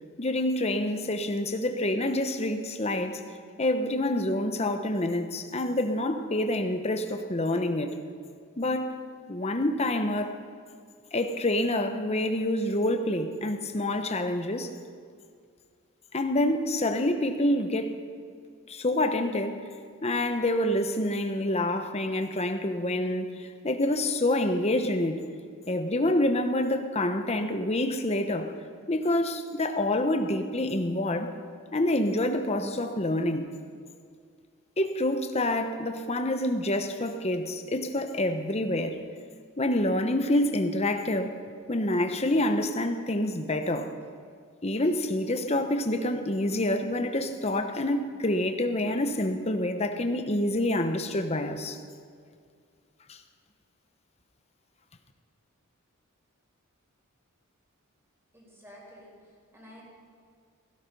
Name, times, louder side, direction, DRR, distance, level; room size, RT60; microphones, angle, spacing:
voice 1, 0.2-3.2 3.6-8.0 8.6-9.0 9.3-10.4 11.1-14.7 16.1-17.9 18.7-19.7 20.0-25.2 25.7-28.5 28.9-31.3 31.7-33.5 34.8-39.0 39.6-41.4 41.7-43.9 44.6-51.8 53.1-53.2, left 1 dB, 30° left, 7 dB, 1.0 m, -27 dB
voice 2, 58.3-59.1 59.5-59.9, equal, 10° right, -3 dB, 4.6 m, -50 dB
16.5 x 16.0 x 5.5 m, 2.1 s
head